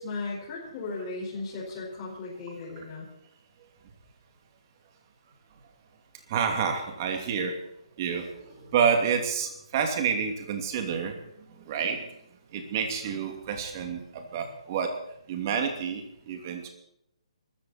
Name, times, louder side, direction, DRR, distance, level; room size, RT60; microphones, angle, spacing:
voice 1, 0.0-3.1, left 3 dB, 25° left, -6 dB, 5.3 m, -36 dB
voice 2, 6.3-7.5 8.0-11.2 11.6-12.1 12.5-14.9 15.3-16.7, right 6 dB, 35° right, 4 dB, 2.7 m, -29 dB
23.0 x 14.0 x 4.4 m, 0.78 s
hypercardioid pair, 165°, 3 cm